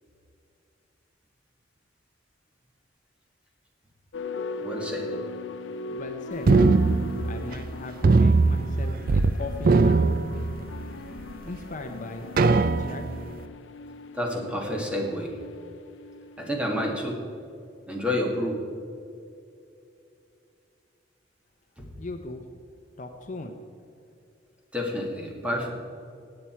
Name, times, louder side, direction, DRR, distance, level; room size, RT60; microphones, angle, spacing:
sound 1, 4.1-17.5, left 3 dB, 80° left, 0.6 m, -39 dB
voice 1, 4.6-5.1 14.1-15.3 16.4-17.2 17.9-18.6 21.8-21.9 24.7-25.7, left 1 dB, 5° right, -1 dB, 2.2 m, -29 dB
voice 2, 5.9-6.5 7.2-10.2 11.4-13.0 22.0-22.5 23.0-23.6, left 2 dB, 45° left, 5 dB, 0.8 m, -38 dB
sound 2, 6.5-7.7 8.0-9.3 9.6-10.9 11.5-11.6 12.4-13.2, right 3 dB, 50° right, 0.4 m, -20 dB
15.5 x 8.9 x 4.6 m, 2.5 s
head